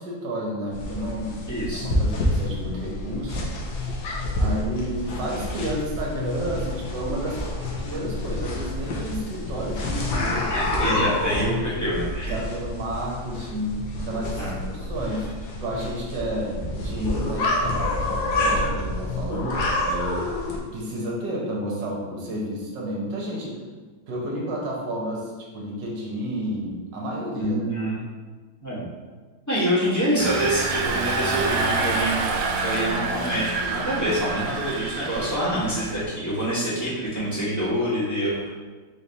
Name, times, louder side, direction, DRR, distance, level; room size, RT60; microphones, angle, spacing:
voice 1, 0.0-1.4 1.8-3.4 4.4-7.4 7.8-10.5 11.1-11.2 12.3-20.2 20.7-23.6 24.1-27.6, equal, 60° right, -3 dB, 1.5 m, -31 dB
sound 1, 0.7-20.6, left 1 dB, 65° left, 1.1 m, -28 dB
voice 2, 1.5-1.9 10.5-12.4 14.4-14.6 27.4-28.0 28.6-28.8 29.5-38.5, right 1 dB, 10° left, -9 dB, 1.1 m, -26 dB
Engine, 30.2-36.1, right 3 dB, 90° right, 1.5 m, -27 dB
4.1 x 3.2 x 4.0 m, 1.4 s
omnidirectional pair, 2.3 m